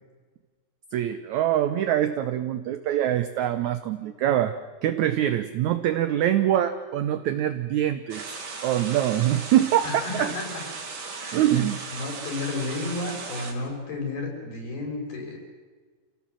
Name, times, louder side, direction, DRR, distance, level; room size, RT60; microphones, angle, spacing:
voice 1, 0.9-4.5 4.8-8.2 8.6-10.3 11.3-11.8, right 12 dB, 80° right, 11 dB, 1.7 m, -24 dB
sound 1, 8.1-13.5, right 4 dB, 60° right, 4.3 m, -37 dB
voice 2, 9.8-10.4 11.2-15.4, left 3 dB, 75° left, 1 dB, 6.8 m, -32 dB
27.5 x 17.0 x 7.6 m, 1.4 s
omnidirectional pair, 4.4 m